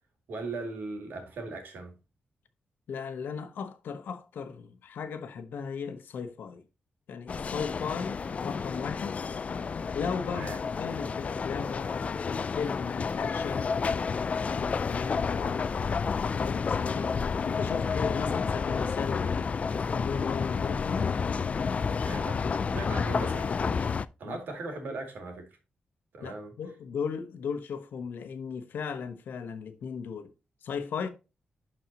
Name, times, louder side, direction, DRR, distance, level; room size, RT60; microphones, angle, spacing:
voice 1, 0.3-2.0 10.3-10.6 22.0-25.6 26.1-26.5, right 3 dB, 80° right, 2.5 m, -39 dB
voice 2, 2.9-6.6 7.1-9.2 9.9-13.7 14.6-17.1 17.4-19.5 20.0-21.1 24.2-24.4 26.2-30.3 30.6-31.1, left 6 dB, 85° left, 1.0 m, -36 dB
sound 1, 7.3-24.1, left 5 dB, 45° left, 0.4 m, -30 dB
12.0 x 4.4 x 2.9 m
wide cardioid pair, 110°, 3 cm